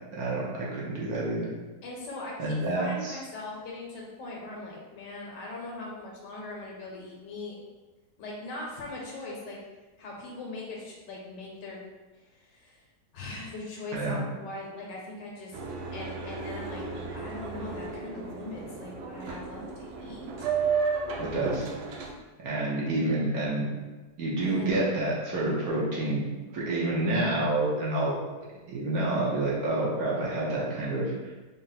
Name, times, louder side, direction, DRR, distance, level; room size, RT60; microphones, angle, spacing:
voice 1, 0.1-1.5 2.4-3.2 13.9-14.2 21.2-21.6 22.4-23.7 24.2-26.2 26.5-28.2 28.7-31.3, right 2 dB, 60° right, -5 dB, 1.2 m, -28 dB
voice 2, 1.8-7.6 8.2-9.6 10.0-11.8 12.1-12.8 13.1-15.6 15.9-20.5 24.4-24.7, left 2 dB, 75° left, -3 dB, 1.5 m, -40 dB
Boat Water vehicle, 15.5-22.1, right 5 dB, 85° right, 1.2 m, -33 dB
4.0 x 2.1 x 3.9 m, 1.2 s
omnidirectional pair, 1.9 m